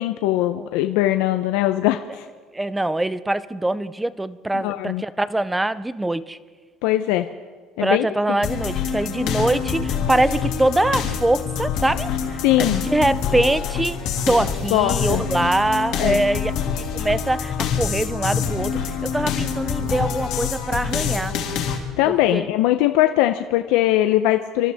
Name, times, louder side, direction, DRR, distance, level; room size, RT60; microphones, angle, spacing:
voice 1, 0.0-2.3 4.5-5.0 6.8-7.3 7.8-8.1 12.4-12.8 14.7-15.2 16.0-16.2 22.0-24.7, left 14 dB, 75° left, 8 dB, 0.5 m, -20 dB
voice 2, 2.5-6.4 7.8-16.5 16.9-21.3 22.1-22.5, right 1 dB, 5° right, 17 dB, 0.4 m, -23 dB
sound 1, 8.4-21.8, left 7 dB, 55° left, 2.2 m, -26 dB
27.0 x 13.5 x 3.5 m, 1.5 s
cardioid pair, 170°, 0 cm